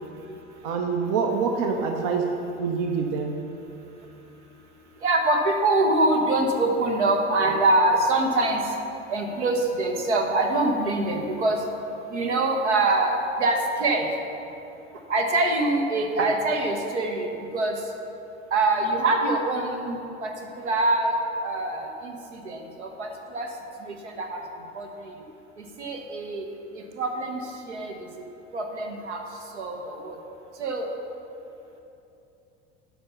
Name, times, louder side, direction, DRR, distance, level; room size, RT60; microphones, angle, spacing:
voice 1, 0.6-2.3 2.6-3.4, right 5 dB, 55° right, 3 dB, 0.8 m, -25 dB
voice 2, 5.0-8.6 9.1-11.6 12.1-14.1 15.1-17.8 18.5-23.5 23.8-24.4 24.7-25.1 25.6-26.5 26.7-27.9 28.5-29.2 29.5-30.2 30.6-30.9, right 2 dB, 75° right, 2 dB, 1.1 m, -24 dB
8.7 x 5.7 x 5.6 m, 2.9 s
figure-of-eight pair, 75°, 35 cm